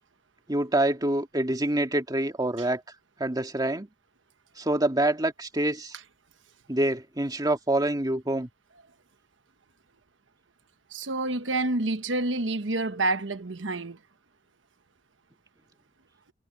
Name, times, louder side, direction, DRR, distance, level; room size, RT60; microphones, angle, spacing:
voice 1, 0.5-2.8 3.2-3.9 4.6-6.0 6.7-8.5, right 1 dB, 20° right, 2.0 m, -26 dB
voice 2, 10.9-14.0, right 2 dB, 80° right, 1.2 m, -28 dB
head